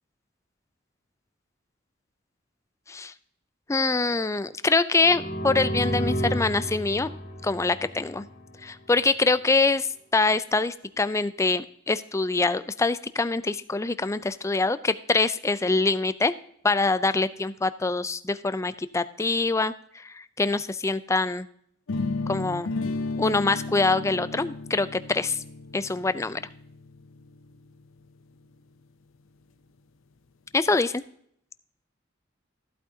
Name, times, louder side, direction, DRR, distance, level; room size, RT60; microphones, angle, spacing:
voice 1, 3.7-7.1 7.4-8.2 8.6-9.9 10.1-16.3 16.6-21.5 22.3-22.7 23.2-25.4 25.7-26.5 30.5-31.0, left 3 dB, 15° left, 14 dB, 0.4 m, -24 dB
sound 1, 5.0-8.7, equal, 45° left, 2.2 m, -31 dB
sound 2, 21.9-27.8, left 3 dB, 75° left, 0.6 m, -33 dB
14.5 x 8.5 x 2.7 m, 0.66 s
head